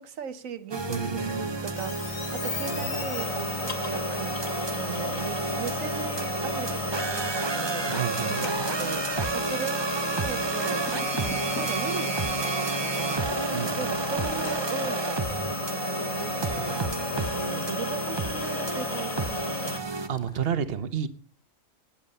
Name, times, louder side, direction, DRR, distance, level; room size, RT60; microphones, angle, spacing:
voice 1, 0.0-8.0 8.3-13.3 13.6-19.9, right 7 dB, 90° right, 1.4 m, -38 dB
sound 1, 0.7-20.1, right 3 dB, 25° right, 0.7 m, -31 dB
sound 2, 0.8-7.5 7.8-7.9 8.6-8.7 9.8-12.0 12.4-12.5 14.6-15.7 16.0-20.5, equal, 20° left, 3.9 m, -44 dB
voice 2, 0.9-1.6 7.8-8.7 13.5-13.9 20.1-21.1, right 8 dB, 50° right, 1.2 m, -31 dB
sound 3, 1.7-19.8, left 4 dB, 85° left, 2.0 m, -34 dB
20.0 x 8.5 x 5.5 m
omnidirectional pair, 1.3 m